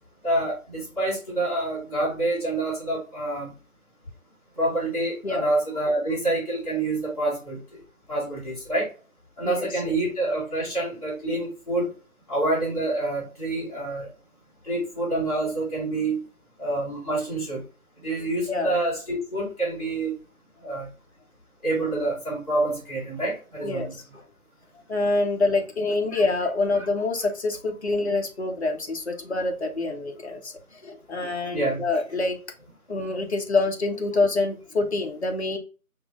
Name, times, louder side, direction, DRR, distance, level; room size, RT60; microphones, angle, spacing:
voice 1, 0.2-3.5 4.6-7.6 8.1-8.9 9.4-11.9 12.3-14.1 14.6-16.2 16.6-17.6 18.0-20.1 20.6-20.9 21.6-24.0 31.5-31.9, right 2 dB, 25° left, -8 dB, 2.1 m, -27 dB
voice 2, 23.6-24.2 24.9-30.5 30.8-32.4 32.9-35.6, left 3 dB, 50° left, 2 dB, 0.8 m, -26 dB
5.6 x 2.1 x 3.5 m, 0.35 s
figure-of-eight pair, 165°, 43 cm